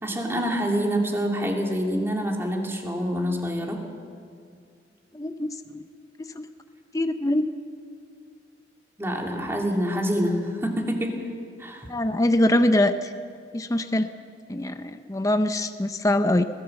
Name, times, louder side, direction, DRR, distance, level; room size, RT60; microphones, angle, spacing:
voice 1, 0.0-3.8 9.0-11.1 11.6-11.9, equal, 15° right, 1 dB, 2.6 m, -26 dB
voice 2, 5.1-5.8 6.3-6.4 6.9-7.5 11.9-13.1 13.5-14.1 14.5-16.4, left 1 dB, 20° left, 8 dB, 0.6 m, -23 dB
21.0 x 16.5 x 7.7 m, 2.2 s
head